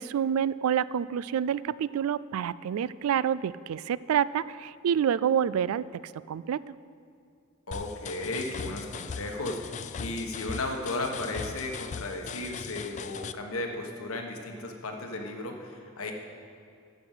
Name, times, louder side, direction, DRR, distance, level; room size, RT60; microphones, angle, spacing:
voice 1, 0.0-5.8 6.3-6.6, right 8 dB, 85° right, 19 dB, 0.3 m, -27 dB
voice 2, 7.7-16.1, left 2 dB, 80° left, 2 dB, 1.4 m, -35 dB
sound 1, 7.7-13.3, left 6 dB, 35° left, 0.3 m, -39 dB
12.5 x 7.9 x 5.7 m, 2.4 s
head